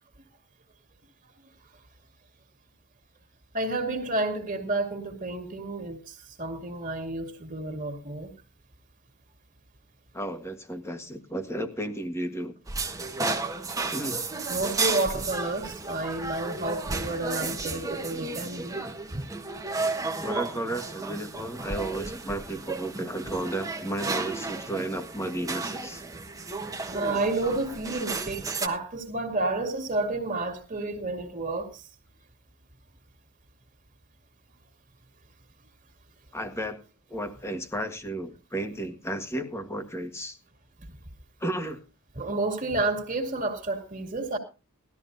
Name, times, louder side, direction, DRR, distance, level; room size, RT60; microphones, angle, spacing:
voice 1, 3.5-8.3 14.5-18.8 19.1-19.2 26.6-31.9 42.1-44.4, right 2 dB, 35° right, 2.4 m, -30 dB
voice 2, 10.1-12.5 13.9-14.3 20.2-26.0 36.3-36.8 37.1-40.4 41.4-41.8, right 1 dB, 10° left, 1.6 m, -33 dB
sound 1, 12.7-28.7, right 3 dB, 15° right, 1.4 m, -33 dB
18.5 x 13.5 x 2.7 m
head